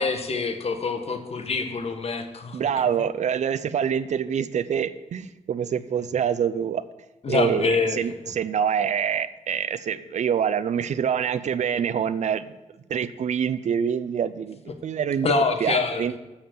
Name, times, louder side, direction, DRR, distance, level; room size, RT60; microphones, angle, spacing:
voice 1, 0.0-2.6 7.2-8.0 15.2-16.0, left 4 dB, 50° left, 7 dB, 1.3 m, -25 dB
voice 2, 2.5-6.8 7.3-12.5 12.9-16.2, right 8 dB, 65° right, 14 dB, 0.5 m, -26 dB
7.7 x 7.1 x 6.6 m, 1.1 s
cardioid pair, 75°, 13 cm